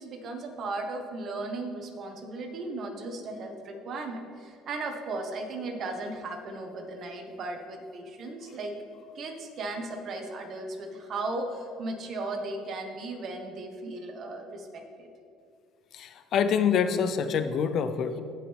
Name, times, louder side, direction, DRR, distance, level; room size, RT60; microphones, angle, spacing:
voice 1, 0.0-8.7 9.1-15.1, right 2 dB, 50° right, 4 dB, 1.5 m, -36 dB
voice 2, 15.9-18.2, left 7 dB, 55° left, 10 dB, 0.7 m, -26 dB
16.0 x 5.6 x 3.5 m, 2.5 s
supercardioid pair, 95°, 0 cm